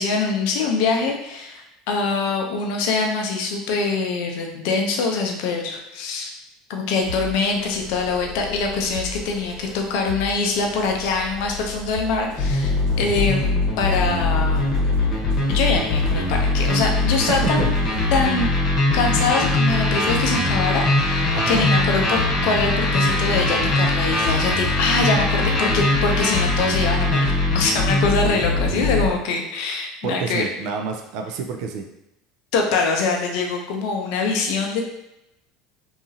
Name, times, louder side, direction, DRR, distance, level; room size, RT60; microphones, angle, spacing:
voice 1, 0.0-6.3 6.7-14.6 15.5-17.7 18.1-18.5 18.9-30.4 32.5-34.8, left 4 dB, 70° left, 2 dB, 0.5 m, -24 dB
sound 1, 7.0-18.2, left 4 dB, 85° right, 1.4 m, -36 dB
sound 2, 12.4-29.1, left 2 dB, 45° left, 0.9 m, -21 dB
voice 2, 17.3-17.7 21.3-21.7 30.0-31.8, right 5 dB, 65° right, 3 dB, 0.4 m, -28 dB
2.8 x 2.4 x 2.7 m, 0.89 s
hypercardioid pair, 90°, 0 cm